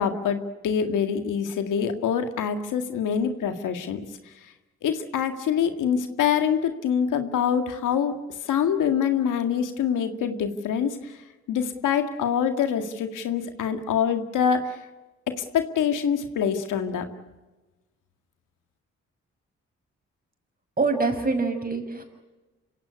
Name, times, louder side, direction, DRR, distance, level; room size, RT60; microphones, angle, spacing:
voice 1, 0.0-4.0 4.8-8.1 8.5-11.2 11.5-14.8 15.4-17.1, left 7 dB, 80° left, 7 dB, 2.0 m, -25 dB
voice 2, 20.8-22.0, right 3 dB, 30° right, 6 dB, 6.4 m, -25 dB
26.5 x 16.5 x 9.7 m, 1.1 s
supercardioid pair, 50°, 31 cm